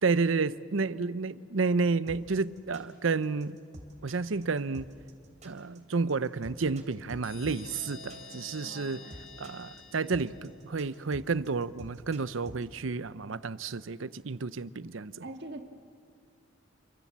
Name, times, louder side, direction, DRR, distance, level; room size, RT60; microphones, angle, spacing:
voice 1, 0.0-3.6 4.0-4.9 5.4-9.1 9.4-15.2, right 4 dB, 75° right, 0.7 m, -31 dB
sound 1, 2.1-12.6, right 1 dB, 35° right, 3.1 m, -48 dB
sound 2, 7.2-10.8, left 4 dB, 65° left, 1.6 m, -48 dB
voice 2, 8.6-9.1 15.2-15.6, right 2 dB, 60° right, 1.8 m, -43 dB
29.0 x 23.5 x 7.4 m
head